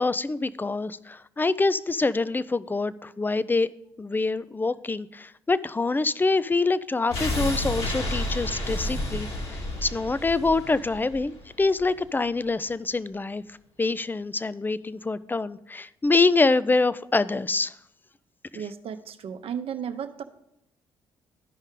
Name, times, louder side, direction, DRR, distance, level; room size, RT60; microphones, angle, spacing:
voice 1, 0.0-3.7 4.0-13.4 13.8-17.7 18.5-18.6, left 3 dB, 15° left, 16 dB, 0.4 m, -25 dB
sound 1, 7.1-12.1 12.4-12.5, left 1 dB, 60° left, 2.1 m, -31 dB
voice 2, 18.5-20.2, right 8 dB, 60° right, 8 dB, 0.8 m, -34 dB
13.5 x 5.3 x 3.8 m, 0.82 s
hypercardioid pair, 50°, 11 cm